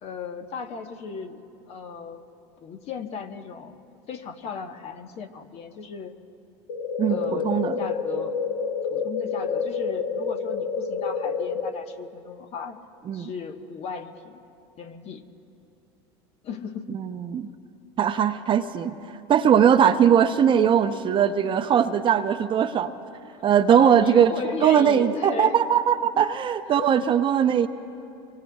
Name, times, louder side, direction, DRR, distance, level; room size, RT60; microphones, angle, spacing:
voice 1, 0.0-1.4 1.7-2.2 2.6-3.8 4.1-6.1 7.1-8.3 8.9-12.8 13.1-14.4 14.8-15.2 16.4-17.0 23.7-25.6 26.1-26.2 26.7-26.9, left 5 dB, 50° left, 6 dB, 1.2 m, -36 dB
sound 1, 6.7-11.7, left 5 dB, 70° left, 1.1 m, -28 dB
voice 2, 7.0-7.8 13.1-13.3 16.9-17.5 18.0-22.9 23.4-24.3 24.6-27.7, right 8 dB, 35° right, 9 dB, 0.7 m, -20 dB
26.0 x 24.0 x 2.3 m, 2.7 s
hypercardioid pair, 90°, 14 cm